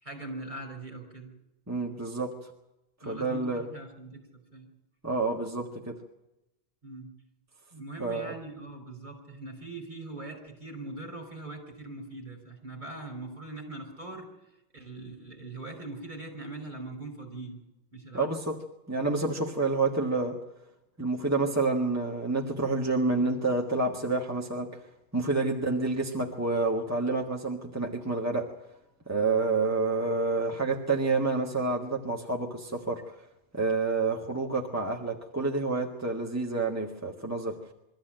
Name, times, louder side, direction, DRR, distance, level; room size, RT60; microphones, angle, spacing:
voice 1, 0.0-1.3 3.0-4.2 4.5-4.7 6.8-7.1 7.7-14.3 14.7-17.6 17.9-18.3 25.3-25.6, right 2 dB, 50° right, 2 dB, 5.8 m, -41 dB
voice 2, 1.7-2.5 3.1-3.7 5.0-6.0 8.0-8.4 18.1-18.6 18.9-20.4 21.0-24.7 25.1-28.5 29.1-33.0 33.5-37.6, right 3 dB, 15° right, -1 dB, 1.7 m, -28 dB
23.0 x 14.5 x 9.0 m, 0.91 s
omnidirectional pair, 1.0 m